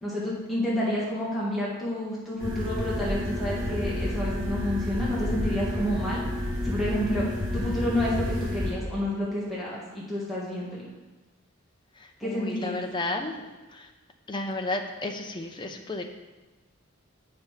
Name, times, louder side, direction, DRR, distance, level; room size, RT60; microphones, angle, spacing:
voice 1, 0.0-6.2 6.6-7.2 7.5-10.9 12.2-12.8, left 1 dB, ahead, -8 dB, 1.8 m, -29 dB
sound 1, 2.4-8.7, left 1 dB, 20° right, 2.8 m, -30 dB
voice 2, 12.0-13.9 14.3-16.0, left 2 dB, 25° left, 3 dB, 0.7 m, -33 dB
7.7 x 5.4 x 5.7 m, 1.2 s
head